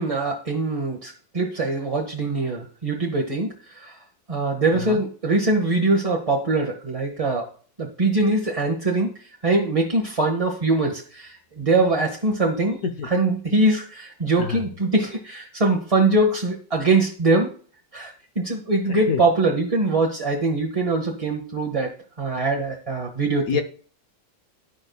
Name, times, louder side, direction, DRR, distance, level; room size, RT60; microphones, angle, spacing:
voice 1, 0.0-3.5 3.8-3.9 4.3-7.5 7.8-9.1 9.4-12.8 13.1-17.5 17.9-18.1 18.4-21.9 22.2-23.6, right 2 dB, 30° right, -1 dB, 0.7 m, -22 dB
voice 2, 18.9-19.2 23.5-23.6, left 7 dB, 65° left, 6 dB, 0.9 m, -26 dB
11.5 x 5.2 x 2.2 m, 0.43 s
omnidirectional pair, 2.0 m